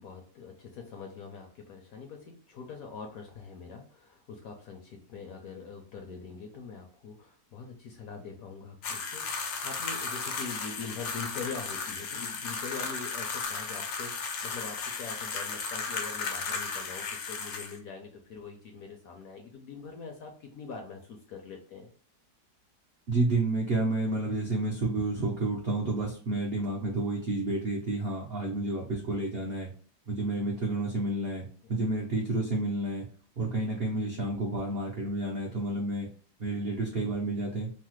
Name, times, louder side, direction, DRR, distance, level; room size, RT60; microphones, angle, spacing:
voice 1, 0.0-21.9 31.6-31.7, left 5 dB, 70° left, 2 dB, 0.8 m, -43 dB
sound 1, 8.8-17.8, left 4 dB, 90° left, 1.4 m, -35 dB
voice 2, 23.1-29.7 30.1-33.1 33.4-36.1 36.4-37.7, right 2 dB, 75° right, -2 dB, 0.5 m, -30 dB
3.1 x 2.0 x 3.0 m, 0.43 s
omnidirectional pair, 1.9 m